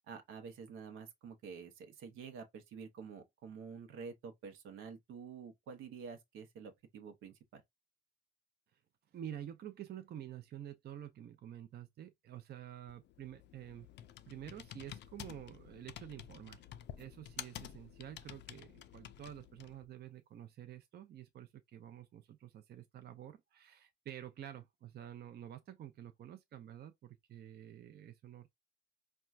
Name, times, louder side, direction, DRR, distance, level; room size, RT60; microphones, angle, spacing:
voice 1, 0.1-7.6, right 5 dB, 85° right, 0.8 m, -49 dB
voice 2, 9.1-13.9 14.3-16.6 17.0-28.5, right 10 dB, 55° right, 0.5 m, -49 dB
Computer keyboard, 12.9-19.9, left 10 dB, 60° left, 0.4 m, -51 dB
4.3 x 2.2 x 2.4 m
cardioid pair, 90°, 20 cm